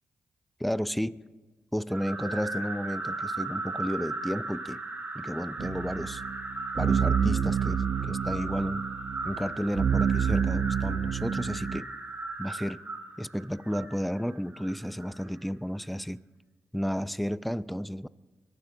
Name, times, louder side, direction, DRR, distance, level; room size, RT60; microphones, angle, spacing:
voice 1, 0.6-1.2 1.7-4.8 5.1-6.2 6.8-8.8 9.2-11.9 12.4-12.8 13.2-16.2 16.7-18.1, equal, ahead, 0.5 m, -32 dB
sound 1, 1.9-15.3, right 3 dB, 30° right, 4.9 m, -37 dB
sound 2, 5.6-11.8, right 7 dB, 70° right, 0.5 m, -28 dB
24.0 x 11.5 x 3.9 m
supercardioid pair, 50°, 5 cm